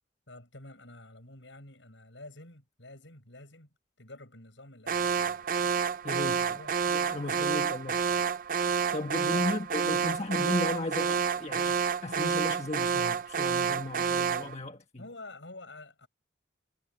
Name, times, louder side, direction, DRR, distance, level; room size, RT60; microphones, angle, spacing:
voice 1, 0.3-5.5 6.2-7.5 7.8-8.3 9.2-9.5 15.0-16.1, left 2 dB, 80° left, 7.0 m, -50 dB
Alarm, 4.9-14.5, right 6 dB, 45° right, 0.6 m, -29 dB
voice 2, 6.0-6.6 6.9-8.0 8.9-15.0, left 2 dB, 35° left, 1.3 m, -35 dB
head